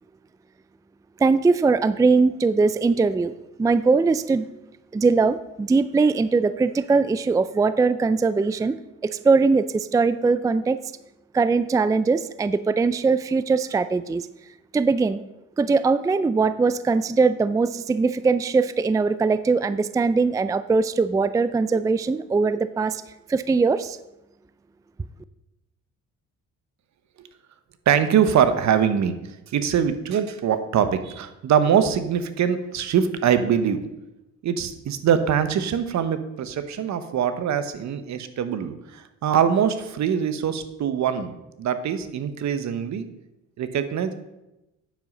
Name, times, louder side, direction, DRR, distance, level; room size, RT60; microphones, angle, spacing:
voice 1, 1.2-3.3 3.6-4.5 4.9-8.8 9.0-10.8 11.3-14.2 14.7-15.2 15.6-23.0 23.3-24.0, right 4 dB, 10° right, 14 dB, 0.3 m, -21 dB
voice 2, 27.9-29.1 29.5-33.8 34.4-38.7 39.2-43.1 43.6-44.2, right 8 dB, 65° right, 10 dB, 1.0 m, -23 dB
9.2 x 7.5 x 5.3 m, 0.95 s
cardioid pair, 90°, 30 cm